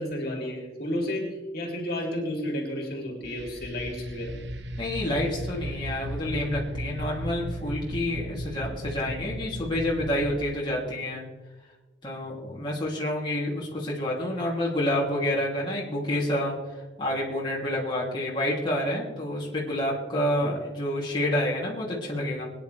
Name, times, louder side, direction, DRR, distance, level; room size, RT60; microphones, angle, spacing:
voice 1, 0.0-4.3 20.4-20.5, left 1 dB, 55° left, 0 dB, 3.1 m, -32 dB
sound 1, 3.2-10.4, right 1 dB, 70° right, 1.1 m, -36 dB
voice 2, 4.8-11.2 12.0-16.5 17.0-22.4, left 1 dB, 25° left, -5 dB, 3.0 m, -28 dB
22.5 x 10.0 x 3.5 m, 1.2 s
head